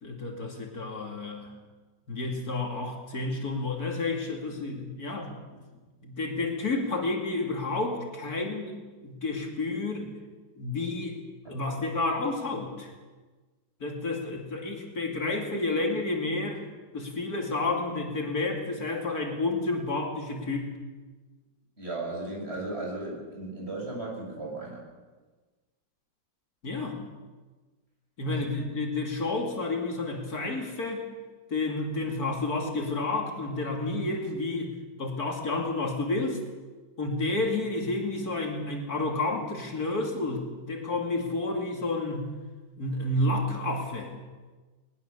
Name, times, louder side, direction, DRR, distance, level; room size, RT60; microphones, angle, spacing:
voice 1, 0.0-1.5 2.1-5.3 6.0-8.7 9.0-10.1 10.6-11.2 11.5-12.9 13.8-16.6 16.9-20.7 26.6-27.0 28.2-31.0 31.5-36.4 37.0-42.3 42.8-44.1, left 2 dB, 55° left, 2 dB, 3.0 m, -30 dB
voice 2, 21.8-24.8 28.3-28.4, right 2 dB, 35° right, -2 dB, 7.1 m, -36 dB
21.0 x 20.5 x 6.9 m, 1.3 s
omnidirectional pair, 1.9 m